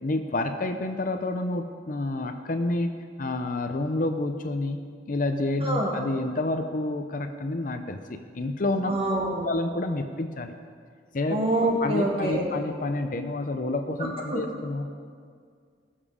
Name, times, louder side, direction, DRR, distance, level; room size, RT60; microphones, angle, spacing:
voice 1, 0.0-2.9 3.2-4.8 5.1-8.9 9.3-10.5 11.1-11.4 11.8-14.9, left 2 dB, 45° left, 7 dB, 0.6 m, -29 dB
voice 2, 5.6-5.9 8.9-9.5 11.3-12.4 14.3-14.4, right 1 dB, 30° right, -2 dB, 2.0 m, -25 dB
19.0 x 7.3 x 5.0 m, 2.1 s
head